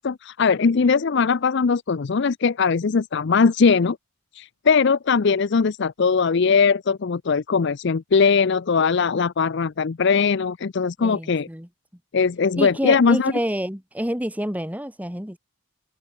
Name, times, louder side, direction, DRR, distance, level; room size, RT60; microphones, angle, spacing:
voice 1, 0.0-4.0 4.3-11.5 12.1-13.3, left 5 dB, 55° left, 0.5 m, -20 dB
voice 2, 11.0-11.7 12.5-15.4, equal, 5° right, 2.9 m, -28 dB
open air
head